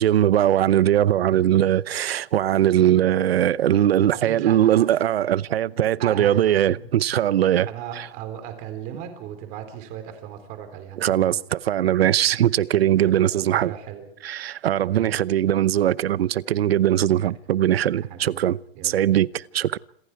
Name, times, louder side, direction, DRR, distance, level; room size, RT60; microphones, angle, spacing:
voice 1, 0.0-7.7 8.0-8.1 11.0-13.7 14.2-18.6 18.8-19.8, right 11 dB, 75° right, 0.9 m, -20 dB
voice 2, 4.1-5.1 6.0-6.8 7.6-11.4 12.2-14.1 14.8-15.2 17.9-18.4 18.7-19.0, right 10 dB, 25° right, 3.9 m, -37 dB
27.5 x 26.5 x 4.7 m
hypercardioid pair, 165°, 31 cm